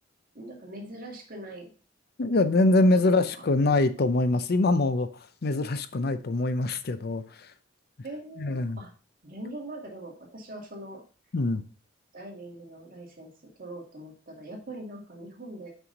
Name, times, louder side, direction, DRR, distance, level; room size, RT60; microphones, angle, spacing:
voice 1, 0.3-1.7 2.9-3.8 4.0-4.1 8.0-8.9 9.2-11.0 12.1-13.3 13.6-15.7, right 1 dB, 50° right, -1 dB, 2.1 m, -42 dB
voice 2, 2.2-5.1 5.4-7.5 8.4-8.8 11.3-11.6, left 2 dB, 55° left, 12 dB, 0.6 m, -24 dB
5.8 x 5.6 x 3.9 m, 0.37 s
head